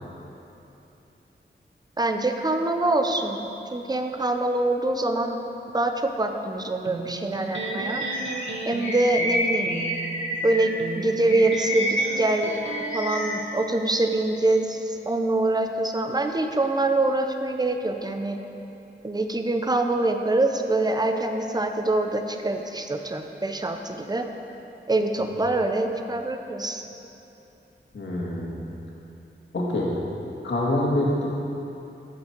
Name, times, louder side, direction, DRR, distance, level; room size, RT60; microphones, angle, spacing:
voice 1, 2.0-5.4 5.7-8.0 8.7-9.8 10.4-12.5 12.9-18.4 19.0-24.2 24.9-26.8, right 2 dB, 20° right, 5 dB, 0.7 m, -25 dB
Electric guitar, 6.8-13.8, right 3 dB, 80° right, 0.8 m, -36 dB
Bird vocalization bird call bird song, 7.4-10.8 11.2-13.4, equal, 85° left, 2.5 m, -29 dB
voice 2, 27.9-28.5 29.5-29.9 30.4-31.3, left 1 dB, 70° left, -5 dB, 2.1 m, -25 dB
14.5 x 5.7 x 4.6 m, 2.9 s
wide cardioid pair, 100°, 19 cm